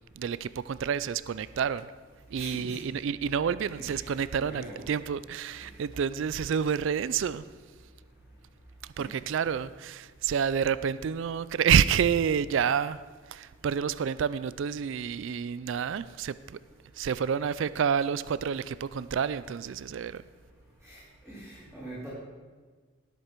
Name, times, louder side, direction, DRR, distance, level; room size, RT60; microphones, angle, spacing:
voice 1, 0.2-1.9 2.3-7.5 9.0-13.0 13.3-16.6 17.0-20.2, right 7 dB, 60° right, 16 dB, 0.3 m, -29 dB
voice 2, 2.4-3.0 3.8-4.1 4.4-4.9 9.0-9.2 20.8-22.1, right 1 dB, 5° left, -11 dB, 3.5 m, -43 dB
18.5 x 8.1 x 4.5 m, 1.5 s
head